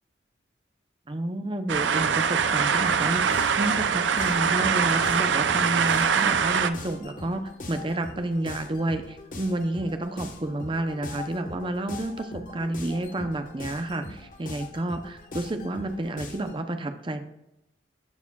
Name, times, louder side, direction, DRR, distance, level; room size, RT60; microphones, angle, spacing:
voice 1, 1.1-7.4 7.7-17.2, right 1 dB, 25° right, 7 dB, 0.6 m, -30 dB
sound 1, 1.7-6.7, right 6 dB, 80° right, 0.5 m, -23 dB
sound 2, 2.9-16.6, left 2 dB, 50° left, 1.2 m, -42 dB
14.0 x 4.8 x 2.3 m, 0.87 s
head